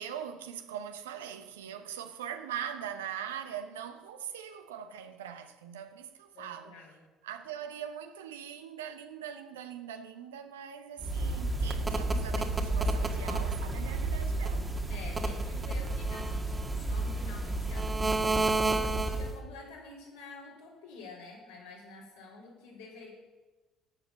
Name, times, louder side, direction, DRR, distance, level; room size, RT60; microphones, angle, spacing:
voice 1, 0.0-6.8 7.2-14.7, right 9 dB, 80° right, 0.8 m, -41 dB
voice 2, 6.3-7.0 14.9-23.1, left 3 dB, 80° left, 3.6 m, -49 dB
sound 1, 11.0-19.4, right 2 dB, 25° right, 1.6 m, -30 dB
11.5 x 7.2 x 6.9 m
figure-of-eight pair, 55°, 0 cm